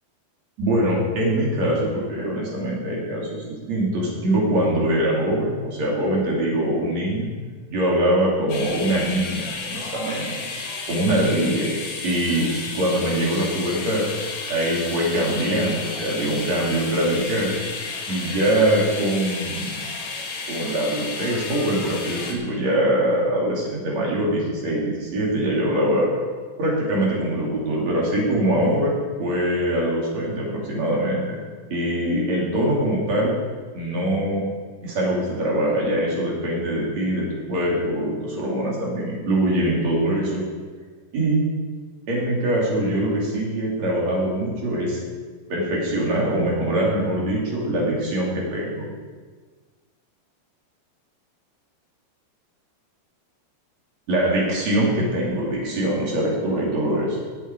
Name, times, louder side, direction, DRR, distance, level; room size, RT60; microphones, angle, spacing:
voice 1, 0.6-7.3 7.7-10.3 10.9-11.7 12.0-14.1 14.5-17.6 18.1-19.7 20.5-26.1 26.6-31.4 31.7-33.3 33.7-34.5 34.8-40.4 41.1-41.4 42.1-45.0 45.5-48.9 54.1-57.2, right 1 dB, 40° right, -4 dB, 3.7 m, -23 dB
sound 1, 8.5-22.3, left 4 dB, 65° left, 3.2 m, -32 dB
19.0 x 8.2 x 4.6 m, 1.5 s
omnidirectional pair, 5.0 m